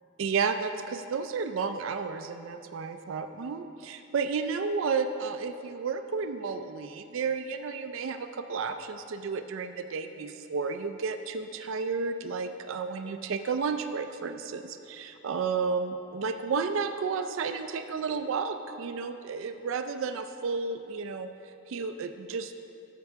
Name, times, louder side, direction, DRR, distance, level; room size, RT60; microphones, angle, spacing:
voice 1, 0.2-21.3 21.7-22.5, right 5 dB, 70° right, 8 dB, 0.4 m, -32 dB
10.5 x 7.4 x 3.5 m, 2.7 s
head